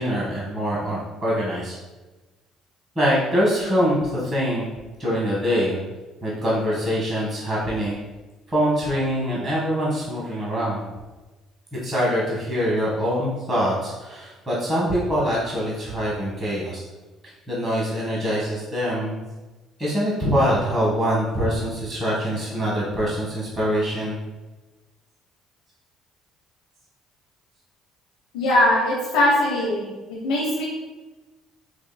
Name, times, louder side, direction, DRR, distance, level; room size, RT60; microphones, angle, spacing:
voice 1, 0.0-1.8 2.9-4.6 5.0-5.8 6.2-7.9 8.5-10.9 11.7-16.8 17.5-19.2 19.8-24.2, equal, 30° right, -6 dB, 1.2 m, -24 dB
voice 2, 28.3-30.7, left 1 dB, 80° left, -6 dB, 0.7 m, -21 dB
4.9 x 2.4 x 2.2 m, 1.2 s
hypercardioid pair, 60°, 0 cm